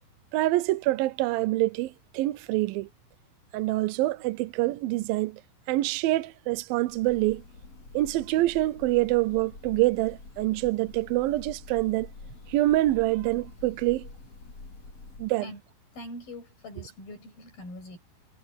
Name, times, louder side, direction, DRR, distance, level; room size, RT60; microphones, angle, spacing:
voice 1, 0.3-2.9 3.5-5.4 5.7-7.4 7.9-12.1 12.5-14.1 15.2-15.5, right 17 dB, 85° right, 2.5 m, -26 dB
Breathing / Bird, 6.9-15.4, left 3 dB, 45° left, 6.1 m, -47 dB
voice 2, 15.9-18.0, left 1 dB, 85° left, 9.9 m, -42 dB
omnidirectional pair, 4.1 m